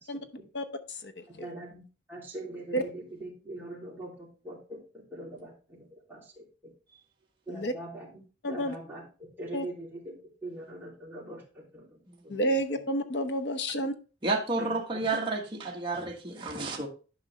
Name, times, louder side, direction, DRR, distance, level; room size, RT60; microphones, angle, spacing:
voice 1, 0.5-1.2 2.7-2.8 7.5-7.7 8.4-8.7 9.5-9.6 12.3-13.9, right 1 dB, 65° left, 0.9 m, -30 dB
voice 2, 1.3-1.8 2.1-6.7 7.5-8.2 8.5-12.3 14.6-14.7, right 1 dB, 10° right, 2.9 m, -43 dB
voice 3, 14.2-16.9, right 3 dB, 30° right, 1.4 m, -31 dB
11.0 x 5.3 x 3.3 m
head